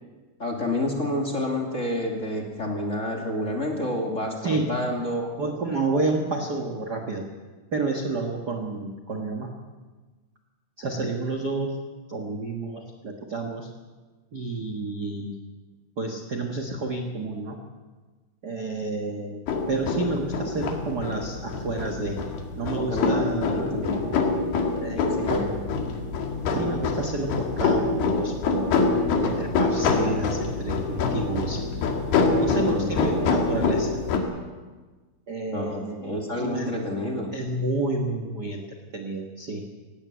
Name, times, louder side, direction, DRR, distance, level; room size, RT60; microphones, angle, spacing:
voice 1, 0.4-5.3 22.7-24.1 25.0-25.5 32.5-33.0 35.5-37.3, left 1 dB, 20° left, 1 dB, 2.4 m, -29 dB
voice 2, 5.4-7.3 7.7-9.5 10.8-11.8 12.1-13.7 14.3-15.3 16.0-17.6 18.4-19.4 19.7-22.3 22.5-23.7 24.8-25.5 26.5-28.8 29.2-31.6 32.4-33.9 35.3-36.7 37.3-38.6 38.9-39.6, right 3 dB, 60° right, 2 dB, 1.0 m, -30 dB
sound 1, 19.5-34.2, left 4 dB, 80° left, 3.9 m, -25 dB
18.0 x 17.5 x 8.4 m, 1.3 s
omnidirectional pair, 4.5 m